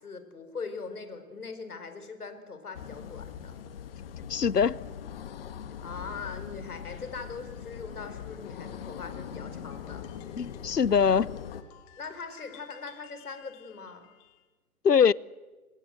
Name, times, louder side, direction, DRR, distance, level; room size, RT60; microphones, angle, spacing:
voice 1, 0.0-3.6 5.8-10.0 12.0-14.1, left 4 dB, 70° left, 4.8 m, -41 dB
sound 1, 2.7-11.6, left 8 dB, 35° left, 1.7 m, -41 dB
voice 2, 4.3-4.8 10.4-11.3 14.8-15.1, left 7 dB, 90° left, 0.8 m, -22 dB
sound 2, 9.7-14.5, left 9 dB, 20° left, 1.8 m, -56 dB
28.0 x 21.5 x 7.8 m
figure-of-eight pair, 135°, 47 cm